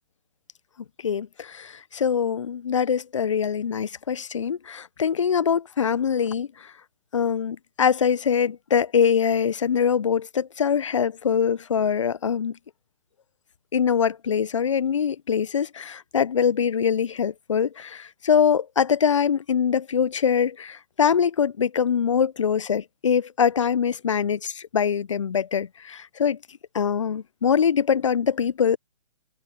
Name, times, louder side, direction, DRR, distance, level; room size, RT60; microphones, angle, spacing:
voice 1, 1.0-6.7 7.1-12.6 13.7-26.4 26.7-28.8, left 7 dB, 65° left, 1.0 m, -23 dB
figure-of-eight pair, 125°, 17 cm